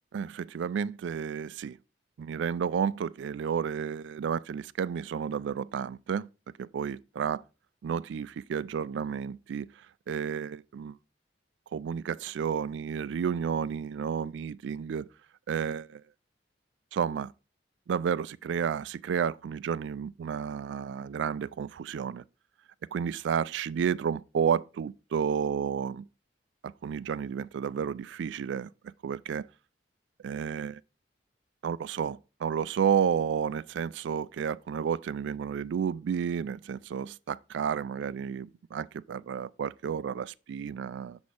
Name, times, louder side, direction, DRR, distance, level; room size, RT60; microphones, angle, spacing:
voice 1, 0.1-1.8 2.2-6.3 6.6-7.4 7.8-11.0 11.7-15.1 15.5-16.0 16.9-17.3 17.9-22.2 22.9-26.1 26.6-29.5 30.2-30.8 31.6-41.2, right 7 dB, 75° right, 0.3 m, -31 dB
6.9 x 4.3 x 4.7 m
head